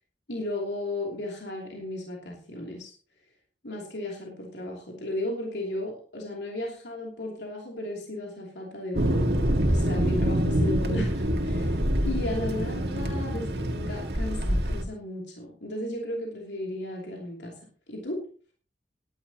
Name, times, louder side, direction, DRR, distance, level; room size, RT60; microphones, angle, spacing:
voice 1, 0.3-2.9 3.6-9.3 9.7-11.8 12.0-17.5 17.9-18.2, left 1 dB, 80° left, -1 dB, 3.0 m, -35 dB
Thunder, 8.9-14.8, equal, 70° right, 1.9 m, -25 dB
18.0 x 11.5 x 2.9 m, 0.42 s
head